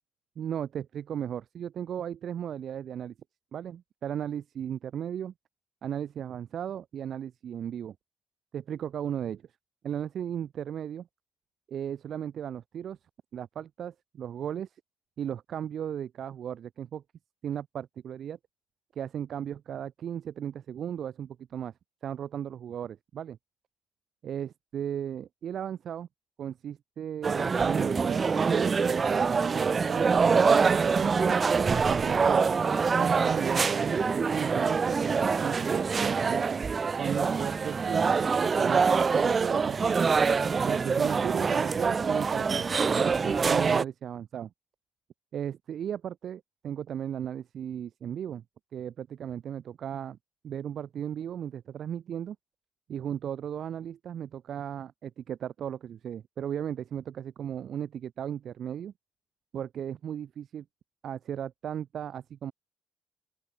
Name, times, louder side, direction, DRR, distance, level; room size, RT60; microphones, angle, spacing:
voice 1, 0.4-3.1 3.5-5.3 5.8-8.0 8.5-9.4 9.8-11.1 11.7-13.0 13.3-14.7 15.2-17.0 17.4-18.4 19.0-21.7 22.0-23.4 24.2-26.1 26.4-31.4 31.7-32.6 33.0-36.6 37.0-40.0 40.6-44.5 45.3-48.4 48.7-50.2 50.4-52.4 52.9-58.9 59.5-60.6 61.0-62.5, right 9 dB, 65° right, 4.1 m, -36 dB
sound 1, 27.2-43.8, right 5 dB, 40° right, 0.4 m, -25 dB
open air
cardioid pair, 90°, 0 cm